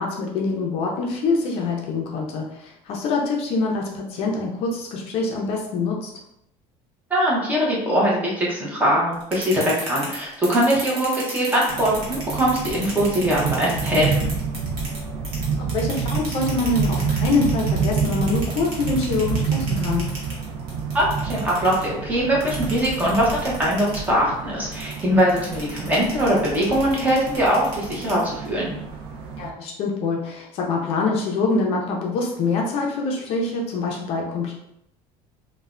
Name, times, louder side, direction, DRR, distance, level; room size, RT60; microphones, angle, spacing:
voice 1, 0.0-6.1 15.5-20.1 29.4-34.6, left 3 dB, 45° left, 0 dB, 0.4 m, -25 dB
voice 2, 7.1-14.3 20.9-28.7, equal, 10° right, -4 dB, 0.6 m, -21 dB
sound 1, 9.1-15.0 15.2-21.8 22.4-24.1 24.7-28.5, right 2 dB, 45° right, 1.0 m, -35 dB
sound 2, 11.7-29.5, right 5 dB, 85° right, 0.5 m, -28 dB
3.1 x 2.1 x 2.4 m, 0.79 s
cardioid pair, 165°, 14 cm